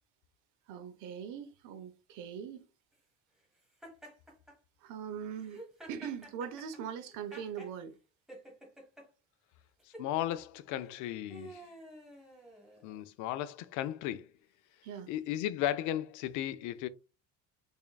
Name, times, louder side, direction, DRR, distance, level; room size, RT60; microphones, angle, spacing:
voice 1, 0.7-2.7 4.8-7.9 14.8-15.1, right 7 dB, 75° right, 0.7 m, -41 dB
Laughter, 3.8-4.6 5.4-7.7 8.3-9.1 9.8-10.1 10.8-13.0, right 1 dB, ahead, 1.2 m, -51 dB
voice 2, 10.0-11.6 12.8-14.3 15.1-16.9, left 12 dB, 75° left, 0.5 m, -35 dB
3.6 x 3.5 x 2.2 m
cardioid pair, 140°, 31 cm